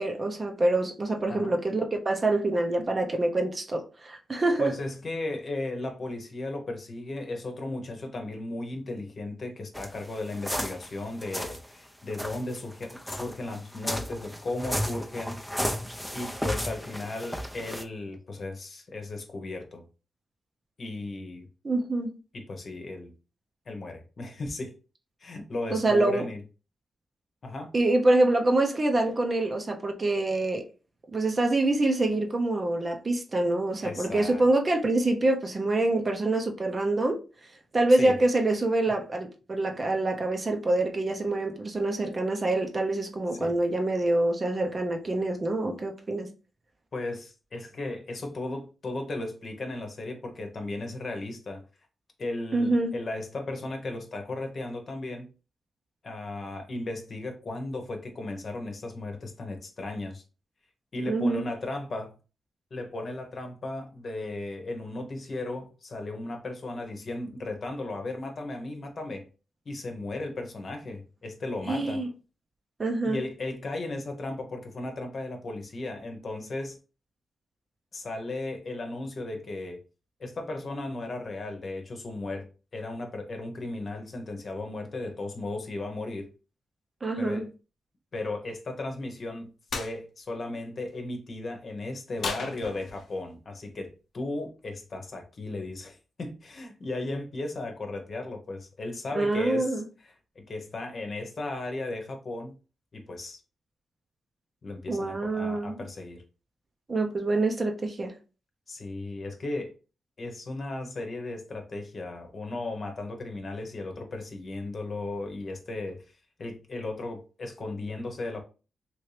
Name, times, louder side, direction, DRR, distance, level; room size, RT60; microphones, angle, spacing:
voice 1, 0.0-4.7 21.6-22.1 25.7-26.3 27.7-30.6 31.1-37.2 37.7-46.3 52.5-53.0 61.1-61.5 71.7-72.1 72.8-73.2 87.0-87.4 99.2-99.8 104.9-105.7 106.9-108.1, right 2 dB, 40° right, 0.7 m, -26 dB
voice 2, 4.6-15.4 16.1-19.8 20.8-21.5 22.3-23.1 23.7-24.7 25.2-26.4 27.4-27.7 33.8-34.4 37.9-38.2 43.4-43.6 46.9-51.6 52.2-55.3 56.0-60.2 60.9-62.1 62.7-69.3 69.7-72.0 73.0-76.8 77.9-79.8 80.2-86.3 87.2-87.5 88.1-89.5 89.8-102.5 102.9-103.4 104.6-106.2 108.7-109.7 110.2-116.0 116.4-118.4, left 2 dB, 55° left, 0.9 m, -36 dB
sound 1, 9.7-11.7 12.1-17.8, equal, ahead, 0.6 m, -34 dB
sound 2, 89.7-89.9 92.2-93.2, left 4 dB, 75° left, 0.6 m, -34 dB
3.0 x 2.7 x 3.2 m
cardioid pair, 55°, 0 cm